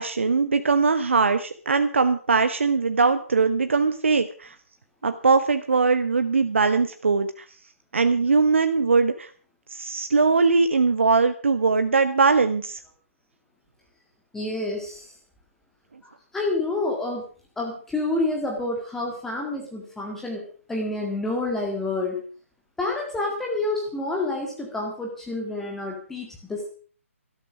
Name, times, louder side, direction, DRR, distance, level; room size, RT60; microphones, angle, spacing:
voice 1, 0.0-4.5 5.0-7.3 7.9-9.3 9.7-12.8, right 4 dB, 55° right, 10 dB, 1.0 m, -21 dB
voice 2, 14.3-15.1 16.3-17.3 17.6-22.2 22.8-26.7, left 2 dB, 5° left, -1 dB, 1.9 m, -28 dB
13.0 x 12.5 x 6.2 m, 0.43 s
figure-of-eight pair, 140°, 8 cm